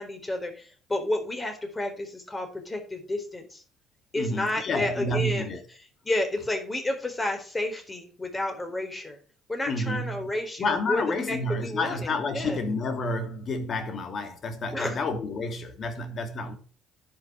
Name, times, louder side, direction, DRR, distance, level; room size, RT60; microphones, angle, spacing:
voice 1, 0.0-3.6 4.1-5.5 6.0-9.2 9.5-12.6 14.7-15.0, left 1 dB, 20° left, 4.4 m, -31 dB
voice 2, 4.1-5.6 9.7-10.3 10.6-16.5, left 2 dB, 50° left, 2.4 m, -30 dB
10.5 x 6.4 x 6.5 m
hypercardioid pair, 55°, 0 cm